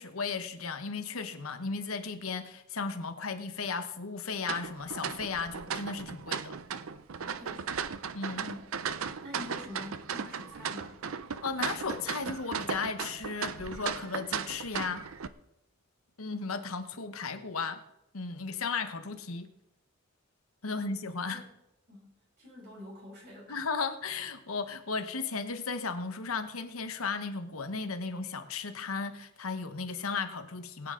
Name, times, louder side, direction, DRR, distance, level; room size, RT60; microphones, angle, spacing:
voice 1, 0.0-6.5 8.1-8.5 11.4-15.1 16.2-17.8 18.1-19.5 20.6-21.4 23.5-30.9, left 4 dB, 85° left, 1.1 m, -35 dB
sound 1, 4.4-15.3, right 6 dB, 75° right, 0.6 m, -36 dB
voice 2, 7.4-7.8 8.3-8.7 9.2-11.0 20.7-20.9 21.3-21.5 21.9-23.6, left 1 dB, 55° right, 5.5 m, -47 dB
20.0 x 9.1 x 3.8 m
head